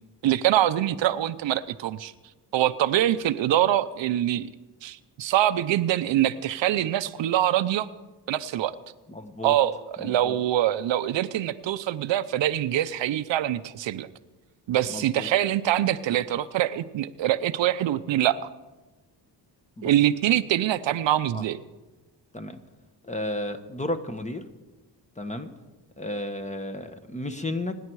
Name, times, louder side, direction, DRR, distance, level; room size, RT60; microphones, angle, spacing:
voice 1, 0.2-2.1 2.5-4.5 4.8-7.9 8.3-8.7 9.4-14.1 14.7-18.4 19.8-21.6, right 12 dB, 85° right, 13 dB, 0.7 m, -24 dB
voice 2, 9.1-9.5 10.0-10.3 14.9-15.3 19.8-19.9 21.3-21.4 22.3-22.6 23.0-24.4 25.2-25.5 26.0-27.8, left 1 dB, 15° left, 8 dB, 1.2 m, -33 dB
25.5 x 10.0 x 4.7 m, 1.1 s
cardioid pair, 115°, 43 cm